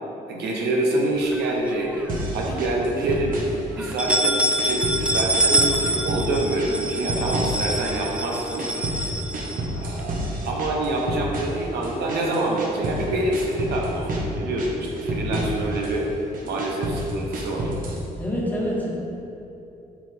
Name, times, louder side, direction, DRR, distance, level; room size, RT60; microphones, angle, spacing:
voice 1, 0.3-1.9 2.3-3.4 3.7-8.6 9.7-10.2 10.4-16.1 16.4-17.7, right 1 dB, 85° right, -2 dB, 1.2 m, -26 dB
sound 1, 1.3-2.2 2.6-2.7 3.1-3.2 3.8-10.0, right 1 dB, 5° right, 0.4 m, -25 dB
sound 2, 2.1-3.6 3.8-5.1 5.3-6.3 6.6-8.0 8.3-13.0 13.3-14.3 14.6-15.9 16.3-18.0, right 1 dB, 55° right, 1.2 m, -30 dB
voice 2, 18.1-18.9, equal, 10° left, -4 dB, 1.5 m, -26 dB
7.4 x 6.2 x 3.6 m, 2.9 s
cardioid pair, 120°, 17 cm